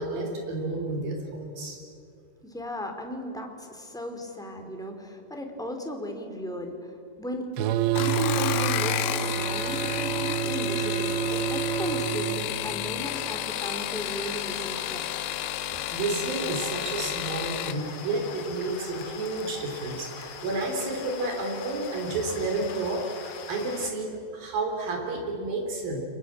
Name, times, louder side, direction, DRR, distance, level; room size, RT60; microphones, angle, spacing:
voice 1, 0.0-1.8 15.7-26.0, right 2 dB, 60° right, 3 dB, 5.4 m, -31 dB
voice 2, 2.4-7.5 8.0-15.0, left 1 dB, ahead, 3 dB, 1.9 m, -36 dB
sound 1, 7.6-12.5, right 9 dB, 85° right, 3.2 m, -28 dB
sound 2, 7.8-17.8 19.0-19.5 19.9-20.3 20.6-20.7, left 14 dB, 80° left, 2.7 m, -32 dB
sound 3, 13.0-23.9, left 6 dB, 65° left, 3.8 m, -41 dB
30.0 x 24.0 x 7.5 m, 2.4 s
omnidirectional pair, 4.9 m